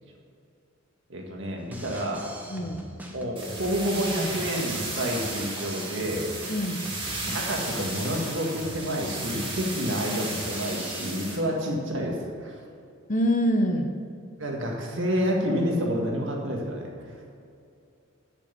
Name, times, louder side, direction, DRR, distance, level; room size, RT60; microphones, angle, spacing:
voice 1, 1.1-2.2 3.1-6.5 7.2-12.6 14.4-17.2, equal, 60° right, 0 dB, 1.8 m, -29 dB
Drum kit, 1.6-11.1, equal, 10° right, 1.0 m, -42 dB
voice 2, 2.5-2.8 6.5-6.8 13.1-13.9, equal, 35° left, 5 dB, 0.8 m, -25 dB
sound 1, 3.4-11.4, right 2 dB, 25° right, 2.1 m, -35 dB
8.4 x 7.2 x 6.9 m, 2.4 s
head